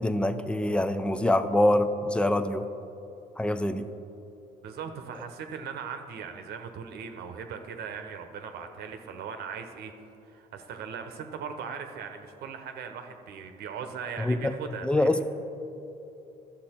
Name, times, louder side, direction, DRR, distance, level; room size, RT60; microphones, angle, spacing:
voice 1, 0.0-2.6 3.4-3.9 14.2-14.5 14.8-15.2, left 1 dB, 5° left, 11 dB, 0.5 m, -25 dB
voice 2, 4.6-9.9 10.2-15.2, right 6 dB, 70° right, 6 dB, 0.9 m, -39 dB
12.0 x 7.4 x 4.4 m, 2.8 s
cardioid pair, 110°, 17 cm